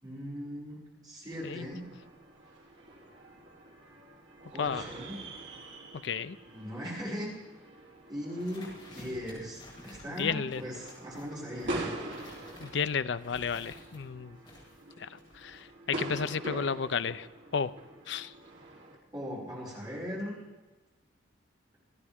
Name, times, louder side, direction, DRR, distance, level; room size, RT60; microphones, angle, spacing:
voice 1, 0.0-1.8 4.5-5.2 6.5-7.3 8.1-11.8 19.1-20.3, equal, 20° right, -7 dB, 5.9 m, -39 dB
sound 1, 1.3-19.0, right 1 dB, 70° right, 3.2 m, -44 dB
voice 2, 6.0-6.4 10.1-10.6 12.6-14.4 15.0-17.3 17.5-17.7 18.1-18.3, left 6 dB, 65° left, 13 dB, 0.5 m, -32 dB
sound 2, 8.4-14.0 14.4-15.6, left 1 dB, 25° left, 6.5 m, -52 dB
29.5 x 9.8 x 3.6 m, 1.2 s
head